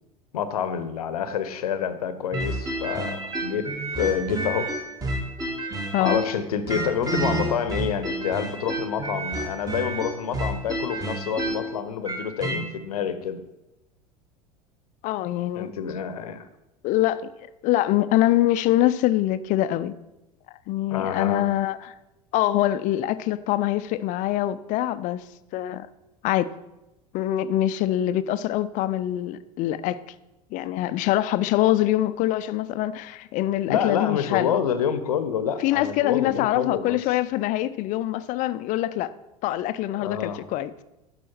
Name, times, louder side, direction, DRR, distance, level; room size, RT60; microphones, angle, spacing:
voice 1, 0.3-4.7 6.0-13.4 15.5-16.4 20.9-21.5 33.7-37.0 40.0-40.4, left 8 dB, 70° left, 12 dB, 0.8 m, -28 dB
sound 1, 2.3-6.4 6.7-12.6, right 1 dB, 20° right, 1.7 m, -29 dB
voice 2, 5.9-6.2 15.0-15.7 16.8-17.3 17.6-19.9 20.7-21.9 22.3-25.2 25.5-25.9 26.2-26.5 27.1-30.0 30.5-34.6 35.6-39.2 39.4-40.8, left 14 dB, 40° left, 15 dB, 0.5 m, -24 dB
10.5 x 6.2 x 4.5 m, 0.95 s
figure-of-eight pair, 80°, 20 cm